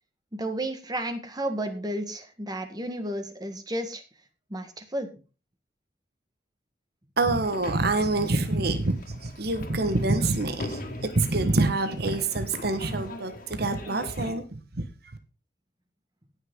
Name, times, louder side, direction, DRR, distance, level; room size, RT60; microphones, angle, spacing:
voice 1, 0.3-4.0 4.5-5.1 13.8-14.0, right 1 dB, 25° right, 7 dB, 1.5 m, -32 dB
voice 2, 7.2-15.2, right 2 dB, 60° right, 8 dB, 1.3 m, -26 dB
sound 1, 7.3-14.3, left 1 dB, 55° left, 2.1 m, -41 dB
17.5 x 6.5 x 3.7 m, 0.33 s
head